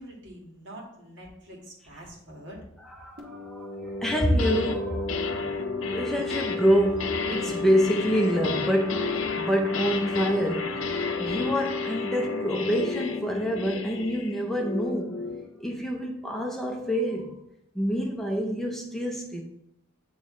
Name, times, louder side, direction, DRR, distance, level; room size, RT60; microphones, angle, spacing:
voice 1, 0.0-2.6, right 1 dB, 60° right, -2 dB, 1.8 m, -45 dB
voice 2, 2.8-5.1 5.9-15.2 15.6-17.4 17.7-19.4, equal, ahead, 0 dB, 0.5 m, -27 dB
sound 1, 3.2-14.6, left 3 dB, 45° right, 1.3 m, -34 dB
sound 2, 4.1-4.8 5.1-15.5, left 4 dB, 70° left, 0.6 m, -34 dB
8.6 x 3.1 x 3.6 m, 0.81 s
head